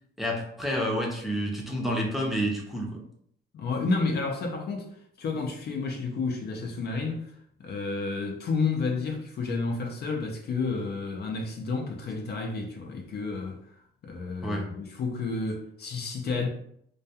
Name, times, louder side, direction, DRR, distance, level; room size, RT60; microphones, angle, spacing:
voice 1, 0.2-3.0 14.4-14.6, equal, ahead, 0.6 m, -29 dB
voice 2, 3.5-4.9 5.2-7.3 7.6-13.6 14.0-16.5, left 4 dB, 55° left, 0.5 m, -30 dB
2.3 x 2.2 x 2.7 m
cardioid pair, 90°, 20 cm